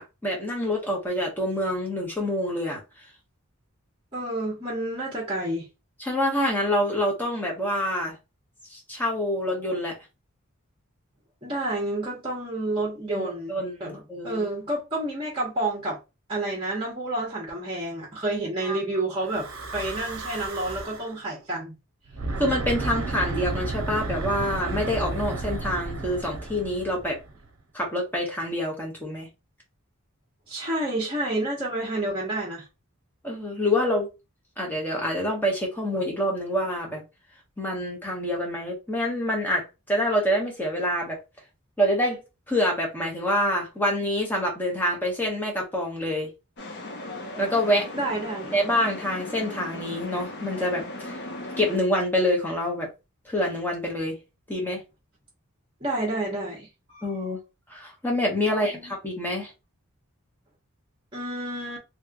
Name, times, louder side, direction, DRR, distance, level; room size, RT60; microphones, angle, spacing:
voice 1, 0.0-2.8 6.0-8.1 8.7-10.0 13.1-14.5 18.6-18.8 19.8-19.9 22.4-27.2 27.7-29.3 33.2-34.1 34.6-37.0 37.6-41.2 41.8-42.2 42.5-46.3 47.4-47.9 48.5-51.2 51.6-52.9 53.2-54.2 54.5-54.8 57.0-57.4 57.7-59.5, left 1 dB, 10° left, 1.1 m, -26 dB
voice 2, 4.1-5.7 11.4-16.0 16.3-21.8 30.5-32.6 47.9-48.6 55.8-57.1 58.4-58.9 61.1-61.8, right 1 dB, 25° right, 0.9 m, -30 dB
Breathing / Wind, 19.2-21.2 22.1-27.4, right 2 dB, 60° right, 0.7 m, -32 dB
sound 1, 46.6-51.8, left 1 dB, 55° left, 0.9 m, -37 dB
3.1 x 2.9 x 2.4 m
head